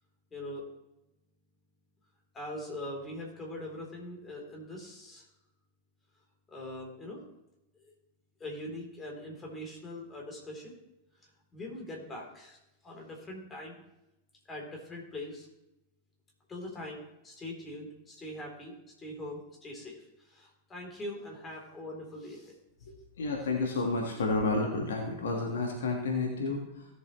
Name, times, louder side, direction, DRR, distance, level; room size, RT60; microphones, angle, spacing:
voice 1, 0.3-0.7 2.3-5.3 6.5-7.2 7.8-7.9 8.4-10.7 11.5-12.6 12.8-13.7 14.5-15.5 16.5-22.5, left 1 dB, 20° left, -1 dB, 3.5 m, -42 dB
voice 2, 22.9-26.9, left 3 dB, 65° left, 1 dB, 1.6 m, -31 dB
16.5 x 7.4 x 3.1 m, 0.93 s
figure-of-eight pair, 90°, 0 cm